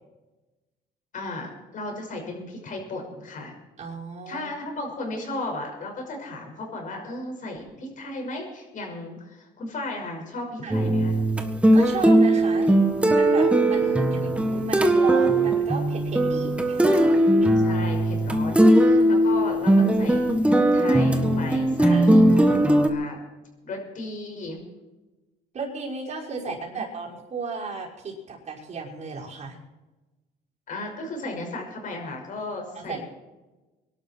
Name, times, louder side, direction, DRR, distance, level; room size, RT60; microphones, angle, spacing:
voice 1, 1.1-3.5 4.3-11.2 17.6-22.3 22.9-23.2 23.6-24.6 26.5-26.8 30.7-33.0, left 2 dB, 50° left, 1 dB, 6.0 m, -35 dB
voice 2, 3.8-4.5 10.6-10.8 11.7-12.7 13.1-17.0 17.4-17.5 21.9-22.1 25.5-29.6 32.8-33.0, right 4 dB, 45° right, -3 dB, 5.7 m, -35 dB
sound 1, 10.7-22.9, right 1 dB, 5° right, 1.7 m, -19 dB
24.0 x 12.0 x 4.6 m, 1.1 s
cardioid pair, 110°, 17 cm